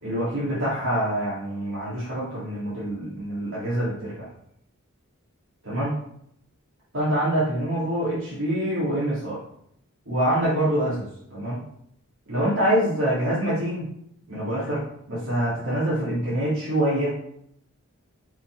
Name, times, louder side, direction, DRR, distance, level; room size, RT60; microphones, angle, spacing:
voice 1, 0.0-4.3 5.7-5.9 6.9-9.4 10.1-11.6 12.3-13.9 14.3-17.2, right 1 dB, 65° right, -9 dB, 2.1 m, -25 dB
5.8 x 4.0 x 4.5 m, 0.72 s
head